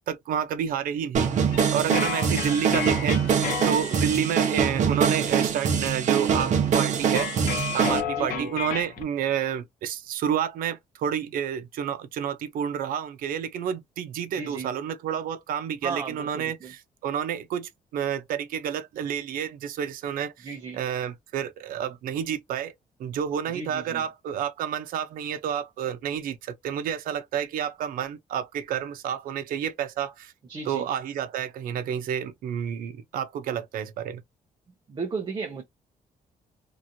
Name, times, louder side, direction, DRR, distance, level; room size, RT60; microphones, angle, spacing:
voice 1, 0.1-1.4 1.7-7.3 7.7-16.8 17.0-20.5 20.8-22.7 23.0-30.3 30.7-34.2, right 8 dB, 85° right, 0.7 m, -29 dB
sound 1, 1.1-8.0, right 7 dB, 55° right, 1.0 m, -24 dB
sound 2, 1.5-4.3 7.1-9.0, left 9 dB, 80° left, 0.7 m, -32 dB
voice 2, 2.4-2.8 8.2-8.5 14.3-14.7 15.8-16.7 20.4-20.8 23.5-24.1 30.4-30.9 34.9-35.6, right 4 dB, 30° right, 0.8 m, -35 dB
3.0 x 2.5 x 2.7 m
cardioid pair, 155°, 14 cm